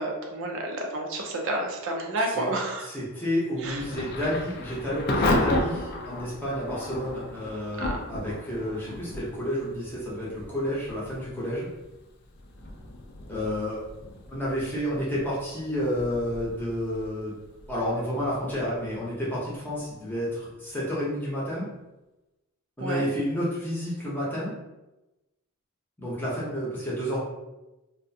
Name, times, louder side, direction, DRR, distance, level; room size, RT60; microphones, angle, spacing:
voice 1, 0.0-2.9 3.6-3.8 7.8-8.0 22.8-23.0, right 2 dB, 60° right, 0 dB, 0.4 m, -30 dB
voice 2, 2.9-11.7 13.3-13.8 14.3-17.4 17.7-21.6 22.8-24.5 26.0-27.2, equal, 10° left, -7 dB, 0.7 m, -30 dB
Thunder / Rain, 3.6-20.3, left 2 dB, 45° left, 0.3 m, -34 dB
2.4 x 2.1 x 2.6 m, 1.0 s
head